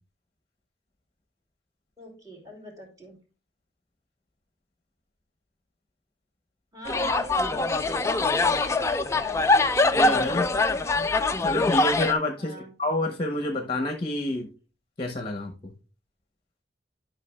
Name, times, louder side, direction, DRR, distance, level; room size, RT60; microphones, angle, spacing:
voice 1, 2.0-3.2 6.7-8.1 8.5-9.7 12.4-12.7, left 1 dB, 20° right, 0 dB, 2.8 m, -42 dB
sound 1, 6.9-12.1, left 3 dB, 15° left, 0.4 m, -23 dB
voice 2, 9.9-10.5 11.4-14.5 15.0-15.7, left 2 dB, 30° left, 5 dB, 0.8 m, -28 dB
11.5 x 5.7 x 2.3 m, 0.34 s
head